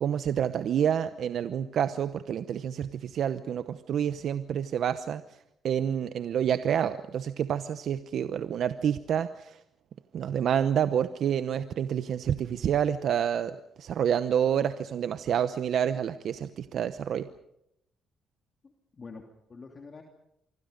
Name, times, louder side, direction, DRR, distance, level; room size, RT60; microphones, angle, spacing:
voice 1, 0.0-5.2 5.6-9.6 10.1-17.3, right 9 dB, 65° right, 11 dB, 0.9 m, -28 dB
voice 2, 18.6-20.0, left 4 dB, 35° left, 2 dB, 2.9 m, -47 dB
26.0 x 24.5 x 5.3 m, 0.78 s
cardioid pair, 90°, 0 cm